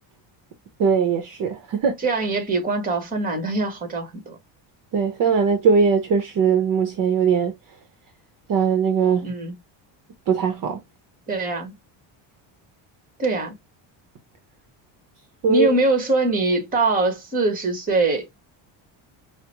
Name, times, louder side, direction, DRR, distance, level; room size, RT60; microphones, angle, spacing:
voice 1, 0.8-2.0 4.9-7.5 8.5-9.3 10.3-10.8 15.4-15.7, right 6 dB, 45° right, 0.7 m, -20 dB
voice 2, 2.0-4.4 9.2-9.6 11.3-11.7 13.2-13.5 15.5-18.2, right 2 dB, 20° right, 1.2 m, -23 dB
4.8 x 2.1 x 2.9 m
cardioid pair, 155°, 46 cm